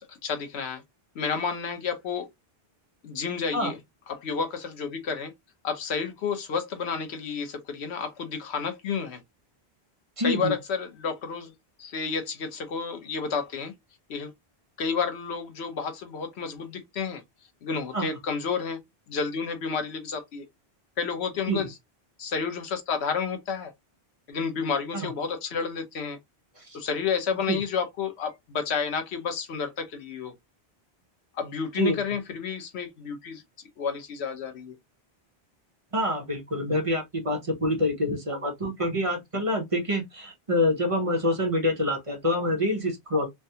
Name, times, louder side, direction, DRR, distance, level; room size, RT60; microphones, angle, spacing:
voice 1, 0.1-0.8 1.1-2.3 3.0-3.8 4.1-5.3 5.6-9.2 10.2-11.5 11.8-13.7 14.1-14.3 14.8-17.2 17.6-18.8 19.1-20.4 21.0-21.7 22.2-23.7 24.3-26.2 26.7-30.3 31.3-33.4 33.8-34.7, left 5 dB, 85° left, 1.1 m, -30 dB
voice 2, 10.2-10.5 17.9-18.1 21.5-21.7 24.9-25.1 26.6-26.8 27.5-27.6 31.7-32.0 35.9-43.3, left 1 dB, 35° right, 0.8 m, -26 dB
3.4 x 2.2 x 2.7 m
omnidirectional pair, 1.1 m